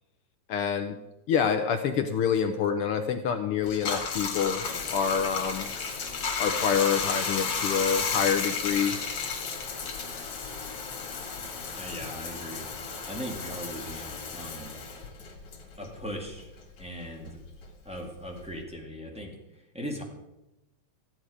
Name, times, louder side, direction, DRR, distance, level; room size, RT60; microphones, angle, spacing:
voice 1, 0.5-1.0 1.3-5.7 6.4-9.0, left 7 dB, 75° left, 7 dB, 1.3 m, -27 dB
Bathtub (filling or washing), 3.6-16.5 16.8-18.6, left 5 dB, 55° left, 2.5 m, -33 dB
voice 2, 11.7-12.6 13.1-14.7 15.8-16.5 16.8-17.4 17.8-20.0, equal, 5° right, -1 dB, 1.3 m, -39 dB
15.5 x 9.2 x 4.9 m, 0.94 s
omnidirectional pair, 3.4 m